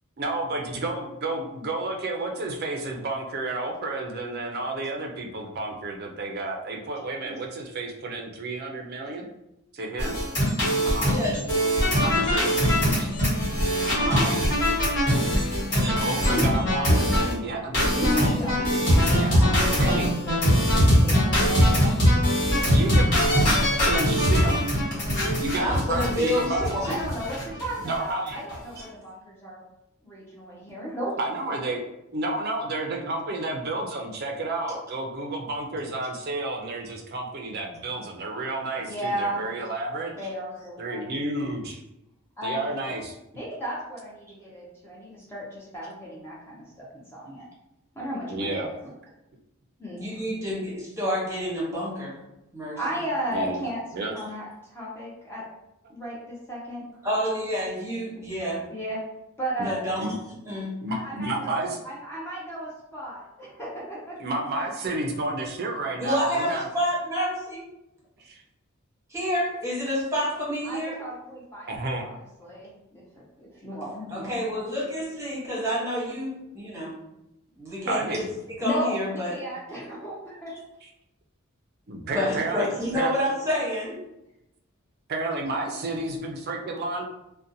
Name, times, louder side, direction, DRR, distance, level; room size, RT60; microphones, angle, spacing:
voice 1, 0.2-9.3 9.7-10.2 10.8-11.4 11.9-12.5 12.9-13.2 13.9-14.4 15.7-20.1 22.7-23.2 23.8-24.6 25.4-26.8 27.8-28.4 31.2-31.8 32.1-40.1 40.8-41.8 42.4-43.1 48.3-48.7 53.3-53.6 53.9-54.1 58.2-58.3 59.6-59.7 60.0-60.1 60.8-61.8 64.2-66.7 68.2-68.4 71.7-72.1 74.3-74.4 77.9-78.3 80.8-80.9 81.9-83.1 85.1-87.1, right 2 dB, 50° right, 2 dB, 0.4 m, -31 dB
sound 1, 10.0-17.3 17.7-27.7 27.9-28.0 28.3-28.5, equal, 55° left, 1.3 m, -22 dB
voice 2, 11.0-11.4 13.9-14.3 25.6-27.0 50.0-52.1 52.5-53.0 57.0-58.6 59.6-60.1 60.5-60.7 66.0-67.6 69.1-71.0 74.1-76.9 77.6-78.2 78.5-79.3 82.0-84.0, equal, 15° right, -6 dB, 0.9 m, -28 dB
voice 3, 18.0-19.6 19.8-22.0 26.8-29.6 30.0-31.1 38.8-39.4 40.2-41.1 42.4-42.9 43.3-47.5 48.0-48.7 49.8-50.0 52.8-55.4 55.9-56.9 58.7-59.0 59.4-60.0 60.9-64.2 70.6-73.0 73.4-74.6 78.6-80.5, equal, 10° left, -6 dB, 0.5 m, -34 dB
2.6 x 2.1 x 2.6 m, 0.88 s
head